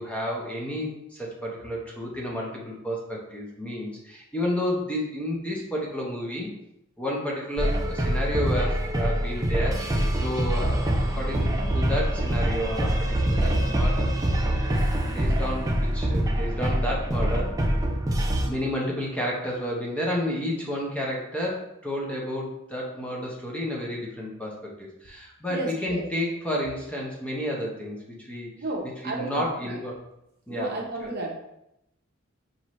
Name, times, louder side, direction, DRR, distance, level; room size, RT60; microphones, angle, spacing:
voice 1, 0.0-6.5 7.0-14.1 14.5-14.7 15.1-17.5 18.5-28.5 29.0-30.0 30.5-30.7 31.0-31.1, equal, 5° left, -3 dB, 0.7 m, -31 dB
sound 1, 7.6-18.5, right 1 dB, 15° right, 0.4 m, -25 dB
voice 2, 25.5-26.0 28.6-29.8 30.5-31.3, right 2 dB, 50° right, 0 dB, 0.8 m, -32 dB
5.7 x 2.6 x 3.1 m, 0.83 s
head